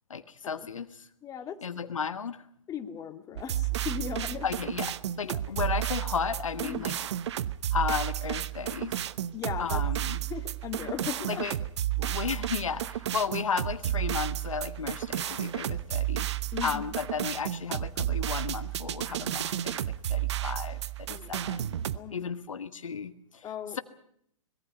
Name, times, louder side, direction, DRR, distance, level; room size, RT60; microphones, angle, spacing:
voice 1, 0.1-1.1 1.6-2.4 4.4-7.0 7.7-9.0 9.6-10.2 11.3-11.5 12.0-16.3 16.6-21.8 22.1-23.4 23.7-23.8, left 6 dB, 70° left, 11 dB, 1.4 m, -34 dB
voice 2, 1.2-1.9 2.7-4.5 5.3-5.4 6.6-6.8 9.3-9.8 10.3-11.4 12.0-12.1 16.5-16.8 21.1-21.5 21.9-22.3 23.4-23.8, left 8 dB, 20° left, 5 dB, 2.2 m, -38 dB
sound 1, 3.4-22.0, right 12 dB, 55° right, 0.9 m, -32 dB
24.5 x 21.5 x 5.5 m, 0.69 s
figure-of-eight pair, 115°, 17 cm